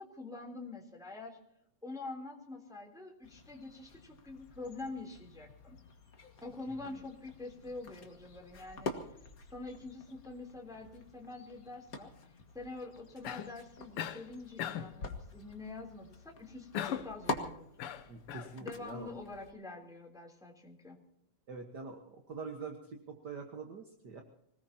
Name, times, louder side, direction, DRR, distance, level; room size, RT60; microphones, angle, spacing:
voice 1, 0.0-1.4 1.8-5.8 6.4-9.2 9.5-12.1 12.5-17.9 18.6-21.0, left 3 dB, ahead, 0 dB, 2.9 m, -46 dB
sound 1, 3.2-19.5, left 3 dB, 40° left, 1.5 m, -46 dB
Cough, 13.2-13.6 14.0-14.3 14.6-15.0 16.7-17.2 17.8-18.5, left 10 dB, 65° left, 1.5 m, -38 dB
voice 2, 18.1-19.1 21.5-24.2, right 4 dB, 45° right, 3 dB, 1.4 m, -45 dB
25.5 x 18.5 x 2.9 m, 0.74 s
omnidirectional pair, 3.6 m